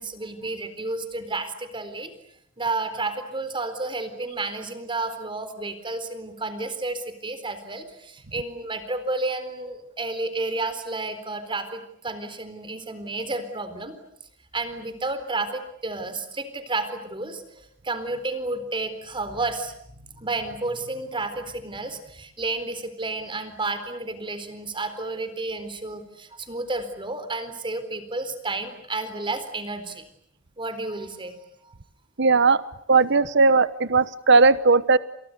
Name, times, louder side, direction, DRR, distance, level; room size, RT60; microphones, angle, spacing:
voice 1, 0.0-2.1 2.6-13.9 14.5-30.0 30.6-31.4 31.6-31.7, right 2 dB, 25° right, 10 dB, 4.1 m, -31 dB
voice 2, 32.2-32.6 32.9-35.0, right 4 dB, 60° right, 15 dB, 1.1 m, -17 dB
30.0 x 28.0 x 6.9 m, 0.71 s
head